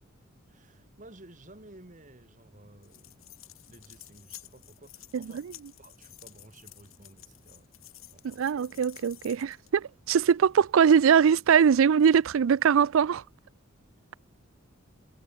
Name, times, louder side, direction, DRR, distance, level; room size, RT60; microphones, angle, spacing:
voice 1, 0.5-7.7 8.1-8.6, right 2 dB, 40° right, 2.8 m, -54 dB
sound 1, 2.8-9.8, left 15 dB, 90° left, 5.5 m, -51 dB
voice 2, 8.2-13.2, right 7 dB, 75° right, 0.4 m, -22 dB
head